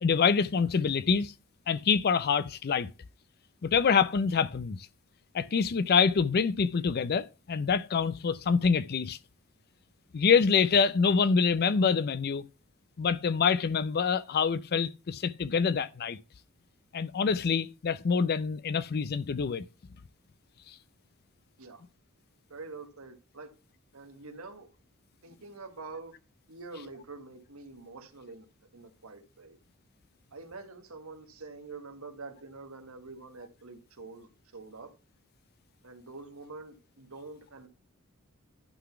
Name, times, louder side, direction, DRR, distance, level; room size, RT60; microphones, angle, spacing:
voice 1, 0.0-1.3 1.7-2.9 3.6-4.8 5.3-9.2 10.1-12.4 13.0-16.2 16.9-19.6, left 6 dB, 45° left, 0.4 m, -26 dB
voice 2, 22.5-23.5 23.9-24.7 25.2-26.1 26.5-28.5 28.7-29.6 30.3-34.9 35.8-37.7, right 3 dB, 75° right, 1.7 m, -46 dB
11.5 x 4.0 x 5.8 m
head